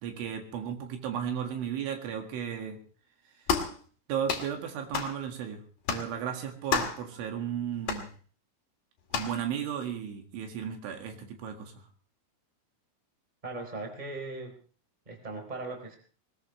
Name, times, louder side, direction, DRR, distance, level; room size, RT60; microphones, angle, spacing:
voice 1, 0.0-2.8 4.1-5.6 5.9-8.1 9.1-11.7, right 8 dB, 75° right, 4 dB, 4.3 m, -34 dB
sound 1, 3.5-3.8 4.3-4.5 4.9-5.2 5.9-6.1 6.7-7.0 7.9-8.1 9.1-9.4, left 6 dB, 50° left, 3.3 m, -30 dB
voice 2, 13.4-14.5 15.0-16.0, right 3 dB, 10° right, 2 dB, 3.0 m, -38 dB
21.0 x 20.5 x 3.2 m, 0.41 s
omnidirectional pair, 5.6 m